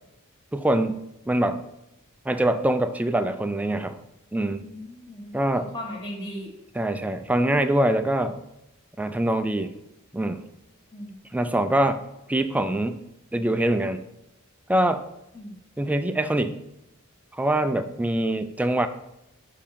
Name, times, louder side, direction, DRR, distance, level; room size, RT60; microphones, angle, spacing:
voice 1, 0.5-1.6 2.3-4.0 4.3-4.7 5.3-5.7 6.8-8.4 9.0-9.7 10.1-10.4 11.3-12.0 12.3-13.0 13.3-14.0 14.7-15.0 15.8-16.6 17.3-18.9, right 1 dB, 5° right, 9 dB, 0.3 m, -24 dB
voice 2, 4.6-6.5 10.9-11.2 15.3-15.6, left 1 dB, 20° left, -7 dB, 1.2 m, -37 dB
6.7 x 3.6 x 5.6 m, 0.83 s
head